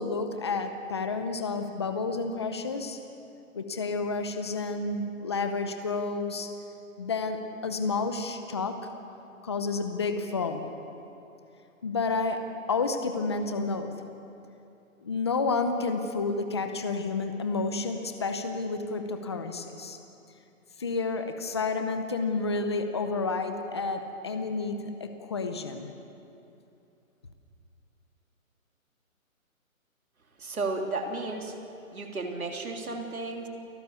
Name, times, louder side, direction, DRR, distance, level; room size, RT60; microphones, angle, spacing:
voice 1, 0.0-3.0 3.5-6.5 7.0-8.8 9.4-10.7 11.8-12.4 12.7-13.9 15.0-20.0 20.8-25.9, left 4 dB, 20° left, 7 dB, 0.7 m, -30 dB
voice 2, 30.4-31.5 31.9-33.5, right 3 dB, 85° right, 2 dB, 3.5 m, -33 dB
29.0 x 15.0 x 7.0 m, 2.7 s
hypercardioid pair, 165°, 42 cm